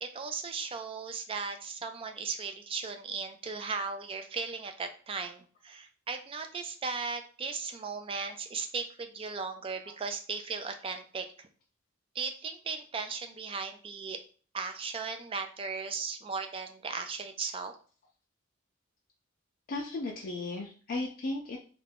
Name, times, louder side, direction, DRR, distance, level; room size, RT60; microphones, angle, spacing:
voice 1, 0.0-11.5 12.1-14.2 14.5-17.7, right 5 dB, 30° right, 7 dB, 0.3 m, -37 dB
voice 2, 19.7-21.6, left 2 dB, 45° left, -2 dB, 0.4 m, -35 dB
2.4 x 2.2 x 3.3 m, 0.40 s
head